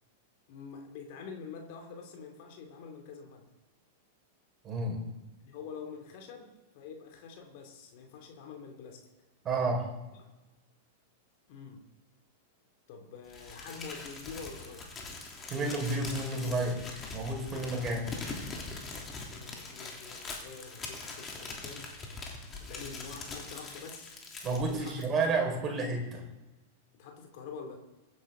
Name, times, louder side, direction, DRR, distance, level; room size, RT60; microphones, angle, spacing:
voice 1, 0.5-3.4 5.4-9.0 10.2-10.3 11.5-11.8 12.9-14.8 19.2-21.9 22.5-24.1 24.7-25.3 27.0-27.8, left 5 dB, 50° left, 3 dB, 2.9 m, -46 dB
voice 2, 4.6-5.0 9.4-9.9 15.5-18.1 24.4-26.2, right 3 dB, 25° right, 0 dB, 5.2 m, -31 dB
Crumpling crinkling, 13.3-25.4, left 3 dB, 20° left, 3.2 m, -42 dB
24.0 x 10.5 x 3.9 m, 1.1 s
figure-of-eight pair, 95°, 0 cm